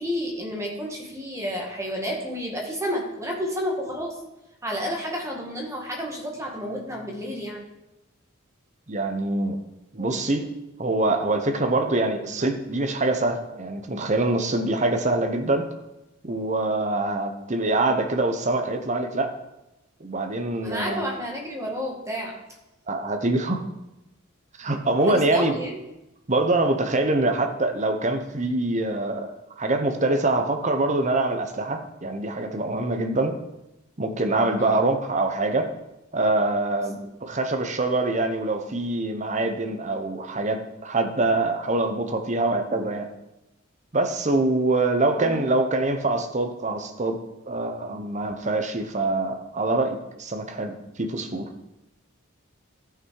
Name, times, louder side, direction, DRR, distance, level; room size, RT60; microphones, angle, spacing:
voice 1, 0.0-4.1 4.6-7.6 20.6-22.4 25.0-25.9 34.6-34.8 37.0-37.1 45.2-45.4, equal, 15° right, 0 dB, 1.8 m, -31 dB
voice 2, 8.9-9.6 9.9-10.5 10.8-15.7 16.2-19.3 20.0-21.0 22.9-23.6 24.6-25.5 26.3-29.3 29.6-33.3 34.0-35.7 36.1-43.1 43.9-47.2 47.5-51.5, right 2 dB, 35° right, 5 dB, 1.0 m, -24 dB
13.5 x 6.0 x 4.8 m, 0.94 s
head